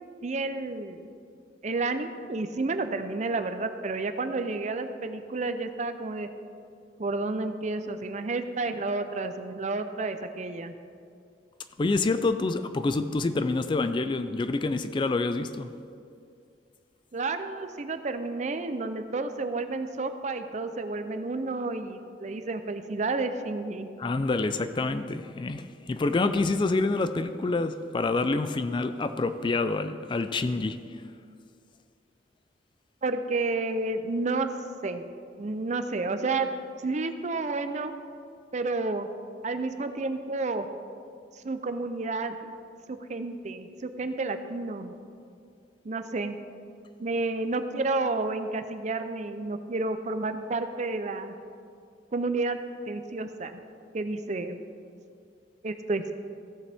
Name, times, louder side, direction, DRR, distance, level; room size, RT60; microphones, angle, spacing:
voice 1, 0.2-1.1 1.6-6.3 7.0-10.7 17.1-23.9 33.0-34.5 34.8-35.0 35.4-36.5 36.8-37.9 38.5-39.1 39.4-40.7 41.4-42.3 42.9-45.0 45.8-46.4 47.0-51.3 52.1-52.6 52.9-53.6 53.9-54.6 55.6-56.1, right 3 dB, 40° right, 9 dB, 0.5 m, -30 dB
voice 2, 11.8-15.7 24.0-25.6 25.9-30.8, left 3 dB, 25° left, 10 dB, 0.3 m, -27 dB
15.5 x 7.1 x 3.4 m, 2.4 s
head